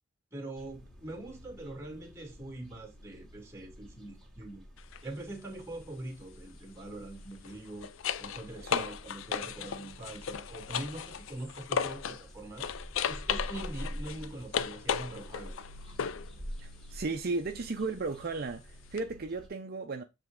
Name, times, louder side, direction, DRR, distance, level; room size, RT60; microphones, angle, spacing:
voice 1, 0.3-4.6 5.0-7.9 8.2-12.7 13.1-15.6, right 1 dB, 15° right, 1.9 m, -43 dB
sound 1, 0.5-19.5, equal, 5° left, 2.0 m, -48 dB
sound 2, 4.8-5.0 7.3-12.3 12.6-16.3 19.0-19.1, left 7 dB, 70° left, 0.4 m, -35 dB
voice 2, 16.6-20.0, right 3 dB, 50° right, 0.5 m, -35 dB
7.5 x 3.4 x 3.7 m
head